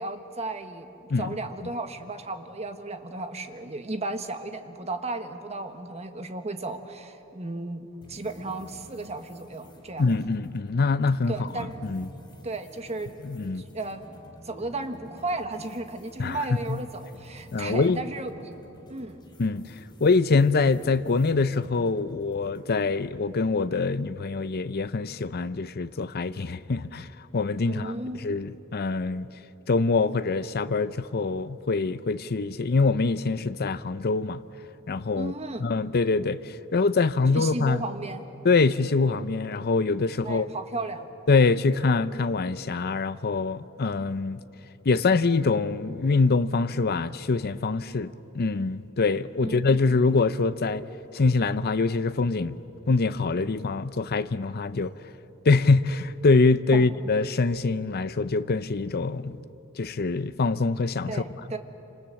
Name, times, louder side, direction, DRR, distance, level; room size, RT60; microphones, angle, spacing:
voice 1, 0.0-10.1 11.3-11.8 12.4-13.1 13.7-18.5 18.9-19.2 27.6-28.2 35.1-35.7 37.3-38.3 40.2-41.1 49.4-49.6 56.7-56.9 61.1-61.6, right 2 dB, 30° right, 1.5 m, -34 dB
sound 1, 8.0-22.8, equal, 20° left, 3.3 m, -50 dB
voice 2, 10.0-12.1 13.2-13.6 16.2-16.4 16.7-16.8 17.5-18.0 19.4-19.6 20.0-27.1 27.3-27.9 28.2-29.3 29.7-34.4 34.9-35.3 35.6-37.8 38.4-40.5 41.3-44.4 44.8-50.9 51.1-52.6 52.9-54.9 55.4-59.4 59.8-61.2, left 3 dB, 45° left, 0.6 m, -24 dB
28.0 x 27.0 x 7.7 m
head